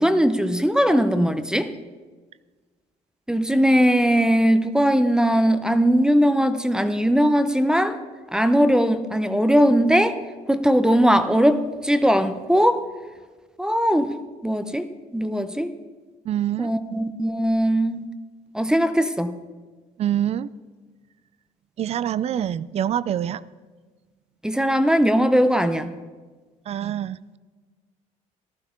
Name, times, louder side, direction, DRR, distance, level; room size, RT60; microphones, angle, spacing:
voice 1, 0.0-1.7 3.3-8.0 8.3-10.2 10.5-12.8 13.6-14.1 14.4-14.9 15.1-15.7 16.6-18.1 18.5-19.4 24.4-25.9, equal, 5° right, 10 dB, 0.6 m, -19 dB
voice 2, 16.3-16.7 20.0-20.5 21.8-23.4 26.7-27.4, right 10 dB, 45° right, 20 dB, 0.4 m, -25 dB
15.0 x 11.5 x 3.7 m, 1.4 s
cardioid pair, 90°, 14 cm